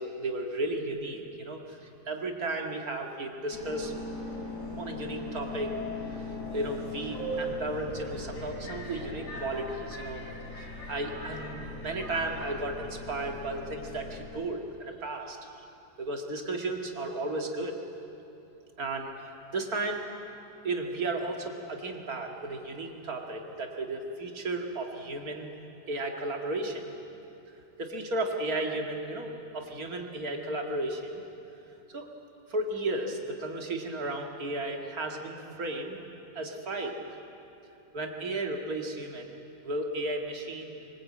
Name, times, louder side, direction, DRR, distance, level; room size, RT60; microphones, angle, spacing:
voice 1, 0.0-3.9 4.8-5.8 6.2-10.2 10.5-15.4 16.0-17.8 18.8-20.0 20.6-25.5 25.9-26.9 27.8-31.2 31.9-32.1 32.5-36.0 36.3-37.0 37.9-40.7, right 2 dB, 60° right, 2 dB, 2.5 m, -34 dB
Subway metro underground, 3.5-14.3, left 1 dB, 80° left, 6.5 m, -39 dB
24.0 x 20.5 x 8.7 m, 3.0 s
omnidirectional pair, 1.8 m